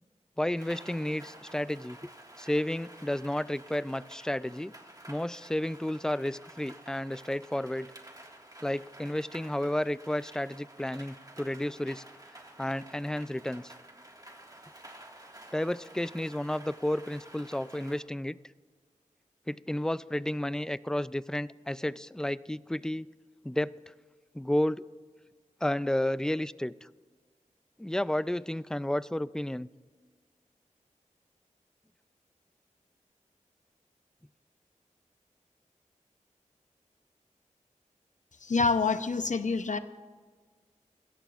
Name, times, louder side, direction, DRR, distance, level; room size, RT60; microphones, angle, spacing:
voice 1, 0.4-2.0 2.4-4.7 5.1-7.9 8.6-12.0 12.6-13.7 15.5-18.4 19.5-23.1 23.4-23.7 24.3-24.8 25.6-26.9 27.8-29.7, left 1 dB, 5° left, 17 dB, 0.3 m, -32 dB
Rain, 0.5-18.0, right 1 dB, 25° right, 1.8 m, -51 dB
voice 2, 38.4-39.8, left 4 dB, 70° left, 10 dB, 0.7 m, -27 dB
25.5 x 14.0 x 2.4 m, 1.5 s
wide cardioid pair, 70°, 13 cm